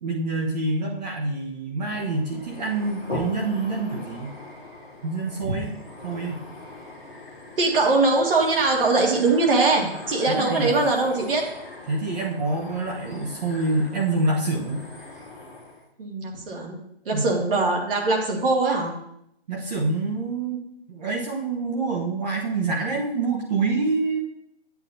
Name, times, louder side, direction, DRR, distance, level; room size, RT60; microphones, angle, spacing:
voice 1, 0.0-4.3 5.0-5.7 6.0-6.4 10.3-10.8 11.9-14.9 17.1-17.3 19.5-20.6 20.9-24.2, right 3 dB, 40° right, -1 dB, 1.1 m, -26 dB
sound 1, 1.9-15.8, left 2 dB, 5° right, 0.4 m, -40 dB
voice 2, 7.6-11.4 16.0-16.8 17.1-18.9, right 3 dB, 60° right, 0 dB, 2.1 m, -21 dB
8.5 x 8.3 x 2.7 m, 0.75 s
hypercardioid pair, 155°, 31 cm